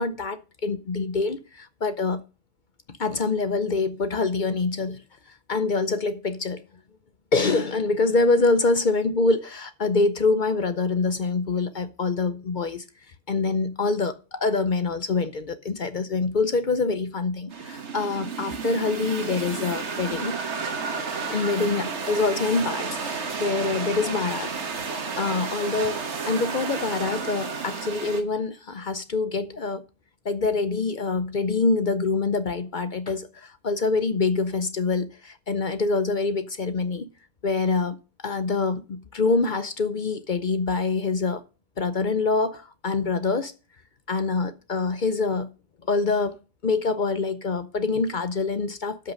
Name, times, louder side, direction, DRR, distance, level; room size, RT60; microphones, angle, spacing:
voice 1, 0.0-2.2 3.0-5.0 5.5-6.6 7.3-12.8 13.3-20.4 21.3-24.5 25.2-26.0 26.3-29.8 30.2-37.1 37.4-38.0 38.2-41.4 41.8-43.5 44.1-45.5 45.9-46.3 46.6-49.1, left 3 dB, 45° left, 0.7 m, -25 dB
sound 1, 17.5-28.2, right 5 dB, 60° right, 1.5 m, -31 dB
13.0 x 5.7 x 5.3 m
omnidirectional pair, 1.4 m